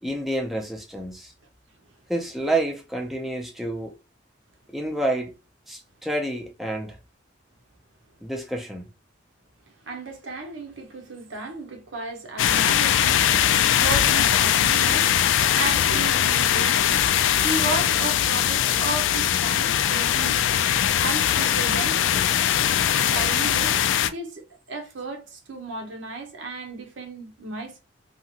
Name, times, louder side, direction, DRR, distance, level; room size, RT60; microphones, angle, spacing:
voice 1, 0.0-1.3 2.1-3.9 4.7-5.3 5.7-7.0 8.2-8.9, right 1 dB, ahead, 0.5 m, -28 dB
voice 2, 9.9-13.3 13.7-15.1 15.5-17.0 17.4-20.4 21.0-22.3 23.1-23.8 24.1-27.8, right 3 dB, 75° right, 0.8 m, -34 dB
sound 1, 12.4-24.1, left 10 dB, 75° left, 0.3 m, -21 dB
2.8 x 2.4 x 2.8 m
head